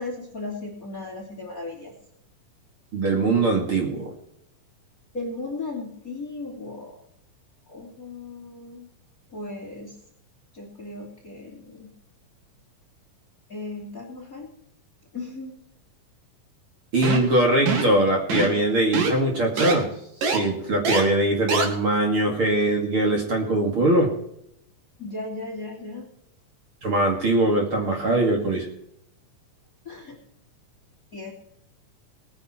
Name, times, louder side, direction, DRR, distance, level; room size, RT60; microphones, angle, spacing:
voice 1, 0.0-1.9 5.1-7.0 7.7-8.9 9.3-10.0 10.5-11.9 13.5-14.5 15.1-15.6 25.0-26.1 27.8-28.0 29.8-30.2 31.1-31.3, left 3 dB, 25° left, 1 dB, 2.9 m, -36 dB
voice 2, 2.9-4.1 16.9-19.9 20.2-24.1 26.8-28.7, right 1 dB, 40° right, 0 dB, 3.0 m, -22 dB
sound 1, 17.0-17.3 17.7-17.9 18.3-18.6 18.9-19.1 19.6-19.7 20.2-20.4 20.9-21.0 21.5-21.7, right 4 dB, 75° right, 3.8 m, -23 dB
20.5 x 9.9 x 4.5 m, 0.75 s
omnidirectional pair, 3.8 m